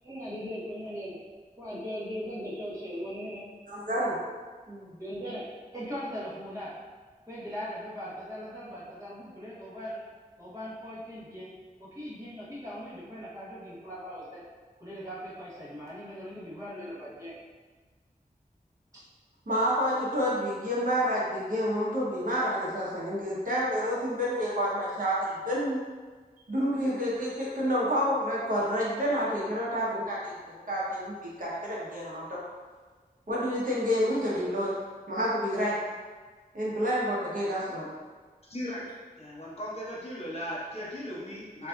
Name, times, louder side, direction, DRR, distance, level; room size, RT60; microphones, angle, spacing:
voice 1, 0.0-1.2 1.6-3.5 5.0-6.9 7.2-10.1 10.4-11.5 11.8-14.4 14.8-17.4 18.9-19.0, equal, 20° right, -9 dB, 1.3 m, -39 dB
voice 2, 3.7-4.2 4.7-4.9 19.5-25.8 26.5-32.4 33.3-34.8 35.1-35.8 36.5-37.9, equal, 60° right, -7 dB, 0.9 m, -29 dB
voice 3, 38.5-38.8 39.2-41.7, equal, 40° left, -7 dB, 0.9 m, -37 dB
3.9 x 2.6 x 2.3 m, 1.4 s
wide cardioid pair, 55°, 16 cm